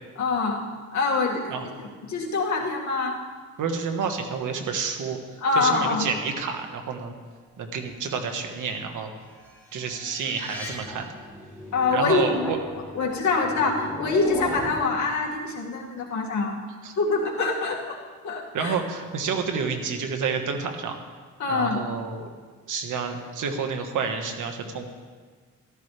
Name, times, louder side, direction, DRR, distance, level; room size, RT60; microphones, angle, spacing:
voice 1, 0.2-0.6 0.9-3.2 5.4-6.1 11.7-12.2 12.9-16.6 17.0-18.0 18.2-18.7 21.4-21.8, left 3 dB, 65° left, -2 dB, 2.2 m, -25 dB
voice 2, 3.6-5.2 5.5-7.1 7.6-9.1 9.7-11.1 11.9-12.6 16.8-16.9 18.5-21.0 21.5-22.3 22.7-24.8, right 5 dB, 80° right, 5 dB, 1.5 m, -29 dB
sound 1, 9.4-14.8, left 2 dB, 5° left, 3.6 m, -36 dB
14.5 x 13.5 x 3.4 m, 1.5 s
cardioid pair, 110°, 31 cm